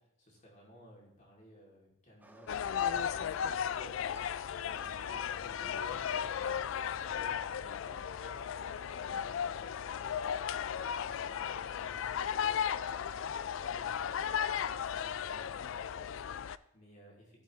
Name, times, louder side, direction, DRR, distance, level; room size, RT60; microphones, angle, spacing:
voice 1, 0.0-10.4 10.8-17.4, equal, 35° left, -3 dB, 2.8 m, -58 dB
sound 1, 2.2-15.2, right 1 dB, 10° right, 0.5 m, -60 dB
sound 2, 2.5-16.6, left 8 dB, 60° left, 0.3 m, -35 dB
15.0 x 7.4 x 3.2 m, 0.82 s
head